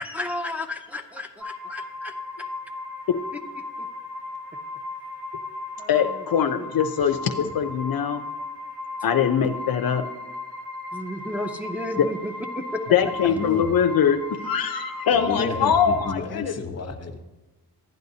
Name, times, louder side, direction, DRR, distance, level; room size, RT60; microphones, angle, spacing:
voice 1, 0.0-2.5 3.8-3.9 5.8-6.1 6.6-6.7 10.9-12.8, left 1 dB, 5° right, 2 dB, 0.6 m, -33 dB
sound 1, 1.4-16.1, left 3 dB, 75° right, 1.2 m, -36 dB
voice 2, 5.9-8.2 9.0-10.1 12.0-12.1 12.9-16.5, left 8 dB, 60° left, 7 dB, 0.6 m, -22 dB
voice 3, 13.0-13.7 15.1-17.2, left 4 dB, 40° left, 6 dB, 1.0 m, -32 dB
12.0 x 9.2 x 2.7 m, 1.1 s
cardioid pair, 70°, 40 cm